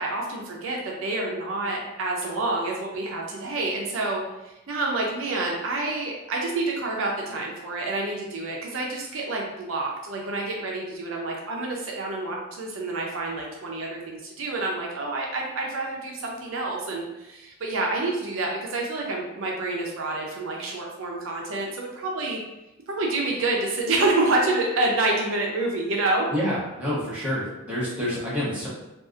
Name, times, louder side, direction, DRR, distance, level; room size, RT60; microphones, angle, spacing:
voice 1, 0.0-22.4 22.9-26.3, right 2 dB, 65° right, -1 dB, 0.5 m, -28 dB
voice 2, 26.3-28.7, equal, 5° right, -9 dB, 0.8 m, -28 dB
2.6 x 2.3 x 2.4 m, 0.98 s
head